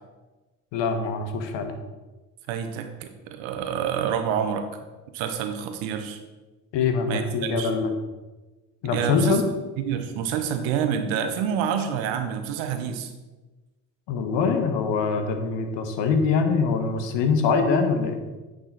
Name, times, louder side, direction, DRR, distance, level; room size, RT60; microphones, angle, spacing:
voice 1, 0.7-1.7 6.7-7.9 8.8-9.4 14.1-18.2, left 5 dB, 65° left, 6 dB, 1.1 m, -23 dB
voice 2, 2.5-4.7 5.1-6.2 7.1-7.7 8.9-9.5 9.8-13.1, right 8 dB, 70° right, 7 dB, 1.0 m, -27 dB
9.5 x 3.9 x 4.0 m, 1.2 s
hypercardioid pair, 60°, 47 cm